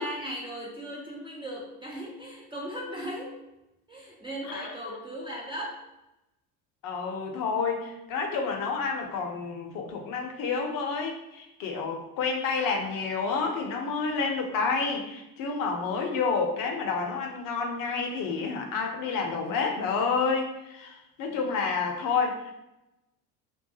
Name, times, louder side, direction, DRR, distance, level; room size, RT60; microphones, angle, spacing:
voice 1, 0.0-3.4 3.9-5.8 21.3-21.7, equal, 15° right, -4 dB, 0.4 m, -38 dB
voice 2, 4.4-5.0 6.8-22.5, left 5 dB, 50° left, 2 dB, 0.6 m, -29 dB
2.3 x 2.3 x 2.7 m, 0.91 s
supercardioid pair, 85°, 43 cm